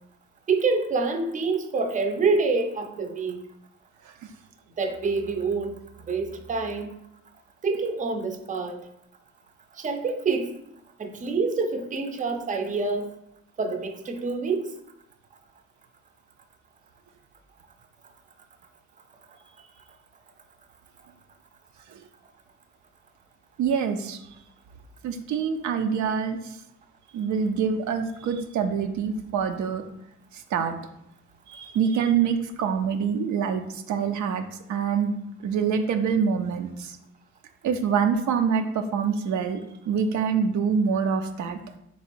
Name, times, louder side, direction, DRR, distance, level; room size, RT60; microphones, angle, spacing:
voice 1, 0.5-3.4 4.8-5.8 6.1-6.9 7.6-8.8 9.8-10.5 11.0-13.1 13.6-14.6, right 4 dB, 25° right, 6 dB, 0.5 m, -26 dB
voice 2, 23.6-24.2 25.0-26.6 27.1-29.8 30.3-30.7 31.5-34.4 34.7-35.2 35.4-37.0 37.6-39.6 39.9-41.6, right 6 dB, 70° right, 6 dB, 0.5 m, -25 dB
3.2 x 3.0 x 4.5 m, 0.79 s
cardioid pair, 90°, 30 cm